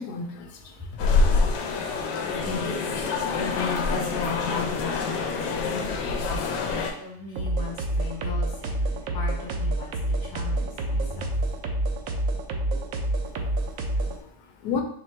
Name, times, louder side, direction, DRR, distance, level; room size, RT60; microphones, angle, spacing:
voice 1, 0.0-1.1 13.3-14.8, left 5 dB, 75° left, 4 dB, 1.1 m, -35 dB
sound 1, 1.0-6.9, left 4 dB, 90° left, 1.2 m, -26 dB
voice 2, 2.4-3.0 3.5-5.9 6.7-9.9 10.2-11.3, left 4 dB, 20° left, -3 dB, 0.6 m, -35 dB
sound 2, 7.4-14.2, right 1 dB, 70° right, 0.8 m, -27 dB
4.3 x 3.3 x 3.2 m, 0.64 s
omnidirectional pair, 1.8 m